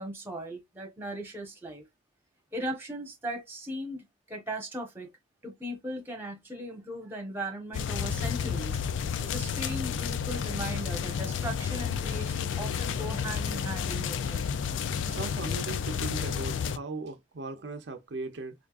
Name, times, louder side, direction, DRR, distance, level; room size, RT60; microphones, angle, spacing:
voice 1, 0.0-1.8 2.5-5.1 5.4-8.8 9.2-14.4, right 1 dB, 10° right, 1.0 m, -38 dB
sound 1, 7.7-16.8, left 7 dB, 75° left, 0.4 m, -31 dB
voice 2, 15.0-18.5, right 3 dB, 65° right, 0.6 m, -38 dB
3.6 x 3.5 x 2.4 m
head